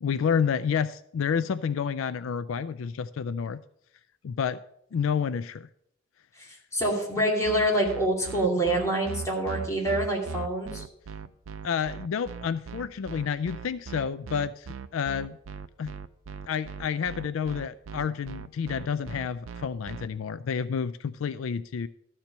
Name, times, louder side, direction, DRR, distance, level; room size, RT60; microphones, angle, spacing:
voice 1, 0.0-3.6 4.2-4.6 4.9-5.7 11.6-15.4 15.8-15.9 16.5-21.9, left 7 dB, 75° left, 14 dB, 0.4 m, -29 dB
voice 2, 6.7-10.8, right 1 dB, 15° left, -3 dB, 2.6 m, -26 dB
sound 1, 7.4-20.1, right 5 dB, 85° right, 0.5 m, -39 dB
13.0 x 4.5 x 6.7 m, 0.73 s
head